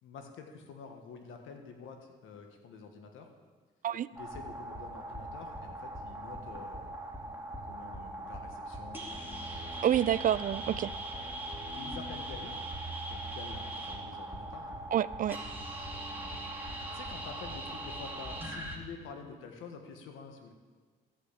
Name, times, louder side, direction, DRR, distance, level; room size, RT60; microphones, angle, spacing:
voice 1, 0.0-3.3 4.1-7.0 7.7-9.8 11.7-12.6 13.1-14.7 16.9-20.5, left 5 dB, 90° left, 4 dB, 1.5 m, -48 dB
sound 1, 4.2-18.8, right 1 dB, 10° right, 2.4 m, -40 dB
voice 2, 9.8-10.9 14.9-15.4, right 10 dB, 45° right, 17 dB, 0.4 m, -28 dB
14.0 x 6.1 x 8.4 m, 1.5 s
cardioid pair, 90°, 20 cm